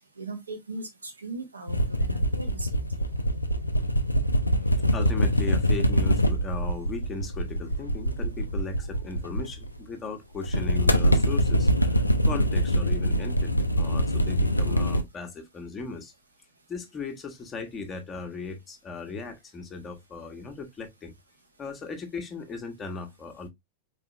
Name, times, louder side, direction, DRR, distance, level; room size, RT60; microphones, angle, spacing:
voice 1, 0.2-2.8, right 3 dB, 80° right, 1.3 m, -39 dB
sound 1, 1.7-9.8 10.4-15.0, equal, 85° left, 0.5 m, -24 dB
voice 2, 4.9-16.1 16.7-21.1 21.6-23.5, left 4 dB, 20° left, 1.1 m, -37 dB
4.8 x 3.4 x 2.9 m
figure-of-eight pair, 90°, 0 cm